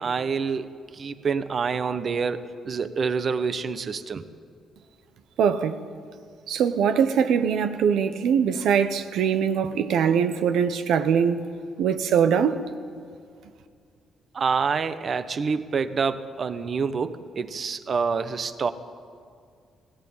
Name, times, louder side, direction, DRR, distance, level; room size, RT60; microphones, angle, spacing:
voice 1, 0.0-4.2 14.3-18.7, right 5 dB, 45° right, 1.1 m, -27 dB
voice 2, 5.4-5.8 6.5-11.5 11.8-12.6, right 7 dB, 80° right, 1.1 m, -22 dB
18.0 x 18.0 x 8.9 m
cardioid pair, 90°, 0 cm